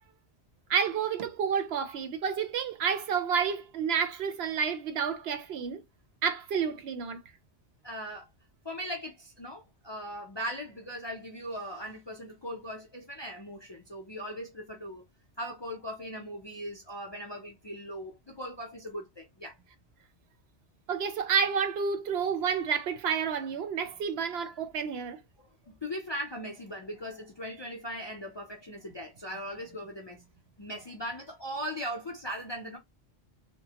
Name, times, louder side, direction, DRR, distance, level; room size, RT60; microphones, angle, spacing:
voice 1, 0.7-5.8 6.2-7.2 20.9-25.2, right 6 dB, 70° right, 0.8 m, -30 dB
voice 2, 7.8-8.3 8.6-15.0 15.4-19.6 25.4-30.2 30.6-32.8, equal, 35° left, 0.4 m, -39 dB
2.9 x 2.1 x 2.8 m
omnidirectional pair, 1.2 m